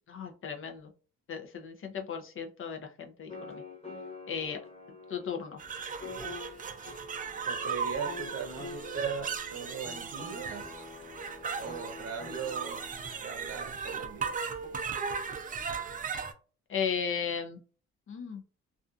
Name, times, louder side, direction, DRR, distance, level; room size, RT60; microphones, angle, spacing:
voice 1, 0.1-0.9 1.3-3.6 4.3-4.6 5.1-5.6 16.7-17.6 18.1-18.4, left 7 dB, 45° left, 4 dB, 0.5 m, -35 dB
sound 1, 3.3-14.7, left 2 dB, 20° left, 1.1 m, -46 dB
sound 2, 5.6-16.3, right 6 dB, 30° right, 0.4 m, -37 dB
voice 2, 7.5-10.6 11.6-12.8 13.2-14.4, right 5 dB, 50° right, 5 dB, 0.7 m, -39 dB
2.4 x 2.4 x 2.3 m, 0.38 s
cardioid pair, 90°, 30 cm